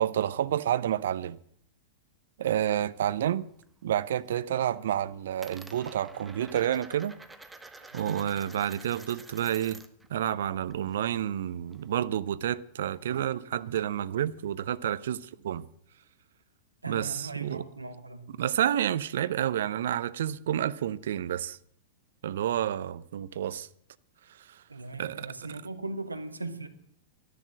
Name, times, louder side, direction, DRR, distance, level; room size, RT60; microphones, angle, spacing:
voice 1, 0.0-1.4 2.4-3.5 3.8-7.2 7.9-9.8 10.1-15.6 16.9-17.6 18.3-21.6 22.2-23.7 24.4-24.6 25.0-25.3, right 10 dB, 65° right, 0.6 m, -29 dB
Coin (dropping), 3.3-3.7 4.0-4.5 4.8-10.1 10.4-12.1, right 2 dB, 5° right, 1.2 m, -50 dB
voice 2, 7.8-8.2 16.8-18.4 24.7-26.7, right 3 dB, 90° right, 1.4 m, -39 dB
13.0 x 11.0 x 7.6 m
figure-of-eight pair, 100°, 0 cm